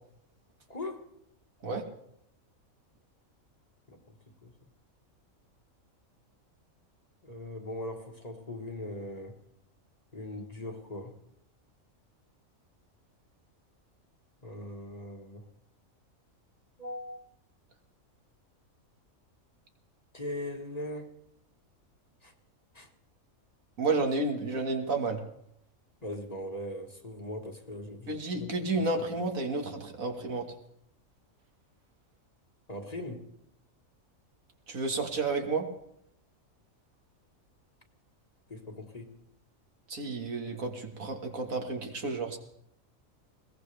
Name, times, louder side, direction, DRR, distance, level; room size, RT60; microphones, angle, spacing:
voice 1, 0.7-1.0 3.9-4.2 4.4-4.5 7.2-9.4 10.1-11.2 14.4-15.4 16.8-17.2 20.1-21.1 22.2-22.3 22.7-22.9 26.0-28.8 32.7-33.3 38.5-39.2, left 1 dB, 30° left, 4 dB, 1.6 m, -40 dB
voice 2, 23.8-25.2 28.1-30.5 34.7-35.7 39.9-42.4, right 3 dB, 80° right, 4 dB, 2.2 m, -31 dB
21.5 x 18.0 x 3.4 m, 0.74 s
omnidirectional pair, 1.4 m